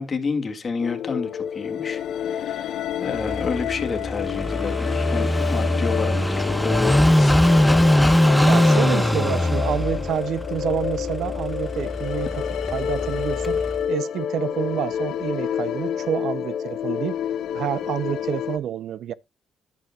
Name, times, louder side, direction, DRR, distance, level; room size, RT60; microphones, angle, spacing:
voice 1, 0.0-7.4 8.4-8.9, left 4 dB, 35° left, 2.0 m, -30 dB
sound 1, 0.8-18.6, left 9 dB, 75° left, 0.9 m, -28 dB
Car passing by / Idling, 3.2-13.8, equal, 5° left, 0.4 m, -22 dB
voice 2, 8.4-12.4 12.7-13.6 13.9-17.2 17.5-19.1, right 10 dB, 75° right, 0.6 m, -28 dB
11.5 x 9.1 x 2.3 m
cardioid pair, 90°, 0 cm